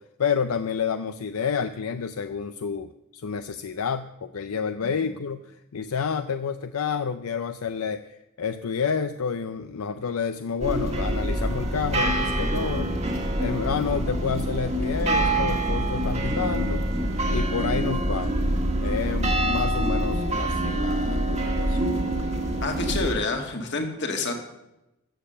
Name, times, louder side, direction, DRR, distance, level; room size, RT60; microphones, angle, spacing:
voice 1, 0.0-12.9 13.4-16.8 17.3-18.5 18.8-21.9, left 6 dB, 75° left, 10 dB, 0.5 m, -29 dB
sound 1, 10.6-23.1, right 1 dB, 30° right, 1.5 m, -25 dB
voice 2, 22.6-24.3, left 3 dB, 50° left, 4 dB, 1.9 m, -28 dB
14.0 x 7.4 x 6.8 m, 0.91 s
head